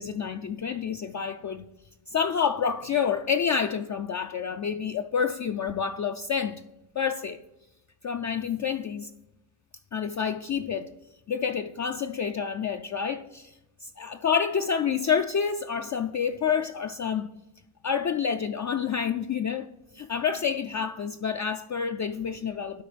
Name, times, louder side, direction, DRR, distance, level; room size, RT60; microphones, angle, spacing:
voice 1, 0.0-1.7 2.1-6.6 7.0-7.4 8.0-9.1 9.9-10.9 11.3-13.5 13.8-17.3 17.8-19.7 19.9-22.8, left 7 dB, 40° left, 0.4 m, -28 dB
12.0 x 4.5 x 3.3 m
cardioid pair, 70°, 50 cm